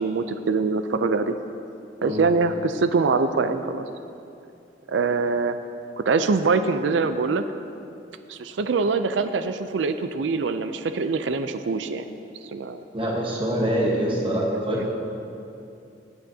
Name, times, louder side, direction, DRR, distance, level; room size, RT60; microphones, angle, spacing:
voice 1, 0.0-1.3 2.0-3.9 4.9-5.6 6.0-7.4 8.3-12.0 12.5-12.8 14.8-14.9, right 4 dB, 80° right, 9 dB, 0.4 m, -24 dB
voice 2, 12.9-14.9, right 1 dB, 30° right, -3 dB, 1.2 m, -24 dB
17.0 x 8.7 x 2.8 m, 2.6 s
head